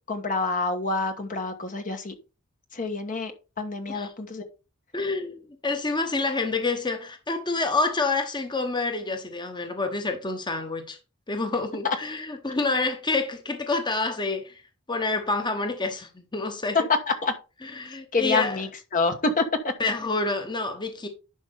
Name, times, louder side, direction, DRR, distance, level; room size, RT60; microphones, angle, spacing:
voice 1, 0.1-2.1 2.7-3.3 3.6-4.4 11.8-12.0 17.1-17.3 18.1-19.7, left 3 dB, 40° left, 1.1 m, -27 dB
voice 2, 4.9-11.0 11.3-14.6 14.9-16.8 17.6-18.6 19.8-21.1, left 3 dB, 20° left, 1.1 m, -28 dB
10.5 x 5.1 x 3.5 m
head